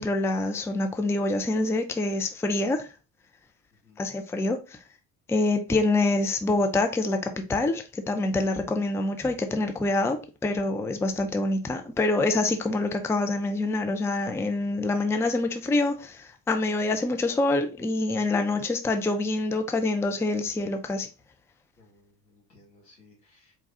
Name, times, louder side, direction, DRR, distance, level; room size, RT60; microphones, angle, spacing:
voice 1, 0.0-2.9 4.0-4.8 5.3-21.1, left 2 dB, 5° left, 0.5 m, -26 dB
voice 2, 21.8-23.5, left 2 dB, 85° left, 2.0 m, -59 dB
4.4 x 2.3 x 3.7 m
hypercardioid pair, 60°, 49 cm